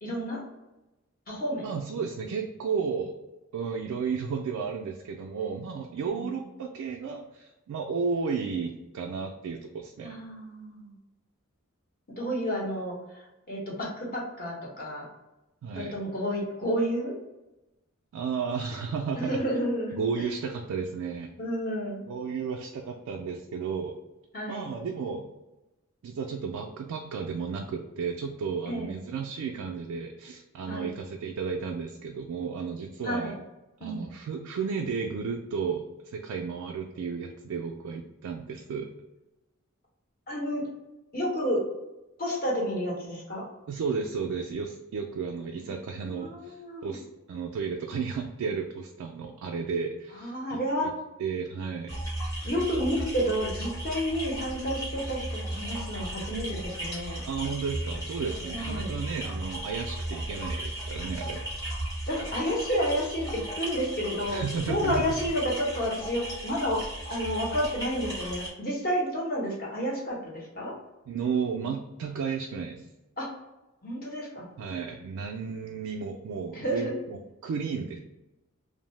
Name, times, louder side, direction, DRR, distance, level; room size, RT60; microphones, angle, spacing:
voice 1, 0.0-0.4 1.3-1.7 6.1-6.4 10.0-10.9 12.2-13.2 13.5-15.1 15.7-17.1 19.2-20.3 21.4-22.0 24.3-24.7 28.7-28.9 30.7-30.9 33.0-33.3 33.8-34.1 40.3-40.6 41.1-41.6 42.2-43.4 45.6-45.7 46.0-47.0 50.2-50.9 52.4-57.2 58.5-58.9 62.1-66.8 67.1-70.7 73.2-73.3 73.8-74.5 76.5-77.0, equal, 45° left, -3 dB, 0.9 m, -30 dB
voice 2, 1.6-3.1 3.5-10.1 15.6-16.0 18.1-19.4 19.9-21.3 22.1-24.0 24.5-25.3 26.0-33.3 33.8-38.9 43.7-50.9 51.2-51.9 57.3-61.5 64.3-65.1 71.1-72.9 74.6-78.0, right 5 dB, 85° right, 2 dB, 0.3 m, -33 dB
sound 1, 51.9-68.5, right 1 dB, 15° left, 0.8 m, -36 dB
2.6 x 2.0 x 3.1 m, 1.0 s
head